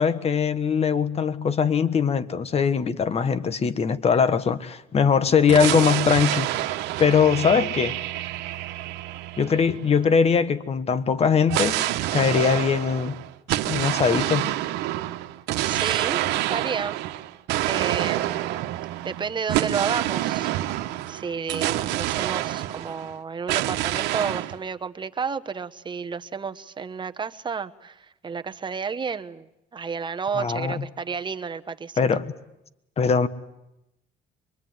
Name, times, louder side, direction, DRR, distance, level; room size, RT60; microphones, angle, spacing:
voice 1, 0.0-6.5 7.0-8.0 9.4-11.9 12.1-13.2 13.7-14.5 30.3-30.8 32.0-32.3 33.0-33.3, left 6 dB, 35° left, 1.4 m, -21 dB
sound 1, 5.5-10.2 11.5-23.1 23.5-24.6, right 15 dB, 90° right, 1.2 m, -27 dB
voice 2, 15.7-16.2 16.5-17.0 17.7-18.6 19.0-20.8 21.1-32.0, right 6 dB, 25° right, 1.1 m, -31 dB
25.0 x 23.0 x 9.4 m
cardioid pair, 110°, 17 cm